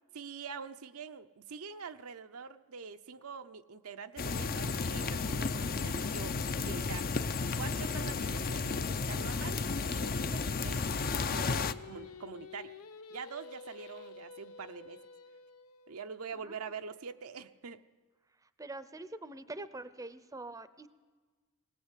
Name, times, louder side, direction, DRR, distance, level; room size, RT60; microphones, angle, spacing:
voice 1, 0.1-7.1 7.6-9.6 9.9-12.7 13.1-15.0 15.9-17.8, right 5 dB, 75° right, 8 dB, 0.7 m, -45 dB
sound 1, 4.2-11.7, left 4 dB, 45° left, 0.6 m, -33 dB
Singing, 10.8-16.0, left 5 dB, 90° left, 0.8 m, -50 dB
voice 2, 18.6-20.9, right 2 dB, 15° right, 13 dB, 0.6 m, -44 dB
20.0 x 19.0 x 8.3 m, 1.4 s
head